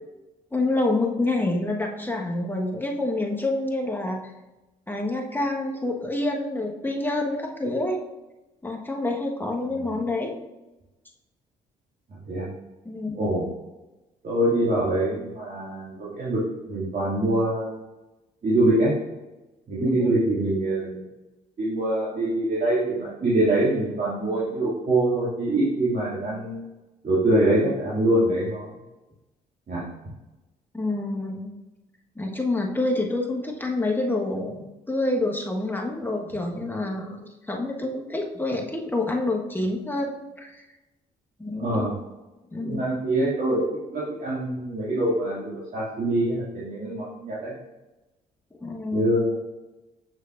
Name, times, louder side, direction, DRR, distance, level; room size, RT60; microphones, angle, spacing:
voice 1, 0.5-4.2 4.9-8.0 8.6-10.3 12.8-13.3 19.8-20.1 30.7-31.5 32.2-40.7 41.4-41.9 42.5-42.8 48.6-49.2, left 2 dB, 10° left, 1 dB, 1.4 m, -27 dB
voice 2, 13.1-13.5 14.2-16.4 16.6-17.7 18.4-18.9 19.7-21.0 21.6-26.6 27.0-28.7 29.7-29.8 41.6-41.9 42.6-47.5 48.9-49.4, right 1 dB, 45° right, -9 dB, 2.4 m, -24 dB
7.1 x 6.5 x 2.6 m, 1.0 s
hypercardioid pair, 50°, 20 cm